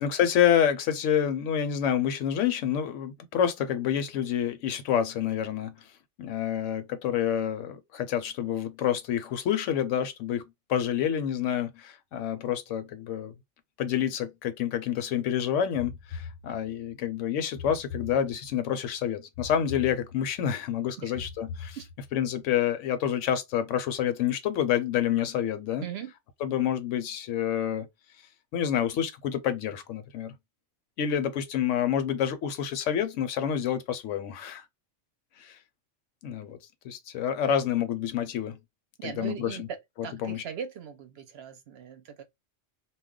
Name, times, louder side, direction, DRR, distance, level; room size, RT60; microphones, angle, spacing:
voice 1, 0.0-5.7 6.2-10.4 10.7-13.3 13.8-21.8 22.1-25.9 26.4-27.9 28.5-30.3 31.0-34.6 35.4-35.6 36.2-36.6 36.8-38.6 39.0-39.7 40.0-40.4, left 9 dB, 80° left, 1.0 m, -28 dB
sound 1, 15.7-16.9 17.6-18.7 19.3-20.5 21.1-22.3, left 5 dB, 60° left, 0.6 m, -42 dB
voice 2, 25.8-26.1 39.0-42.2, right 8 dB, 65° right, 0.8 m, -39 dB
2.3 x 2.1 x 3.6 m
omnidirectional pair, 1.3 m